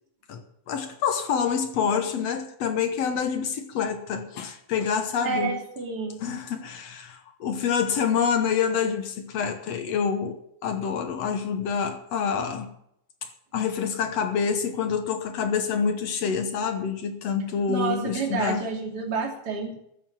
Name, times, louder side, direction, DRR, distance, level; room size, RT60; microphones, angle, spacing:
voice 1, 0.7-5.6 6.2-12.7 13.2-18.7, left 6 dB, 65° left, 2.0 m, -27 dB
voice 2, 5.2-6.2 17.7-19.7, right 5 dB, 30° right, 3.4 m, -29 dB
14.5 x 7.9 x 8.9 m
omnidirectional pair, 3.5 m